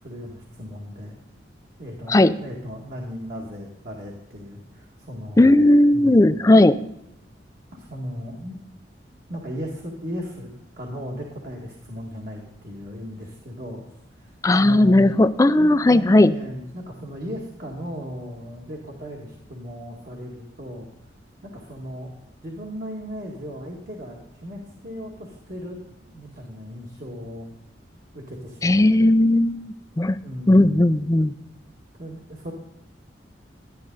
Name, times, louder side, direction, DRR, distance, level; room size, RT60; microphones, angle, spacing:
voice 1, 0.0-1.2 1.8-5.7 5.9-6.2 7.7-8.6 9.3-10.5 10.8-13.8 14.1-15.1 15.5-20.9 21.4-22.1 22.4-27.5 28.1-29.1 30.2-30.8 32.0-32.5, equal, 55° right, -2 dB, 1.9 m, -36 dB
voice 2, 5.4-6.8 14.4-16.3 28.6-30.2 30.5-31.4, left 1 dB, 20° left, 13 dB, 0.4 m, -16 dB
11.5 x 11.0 x 3.9 m, 0.84 s
head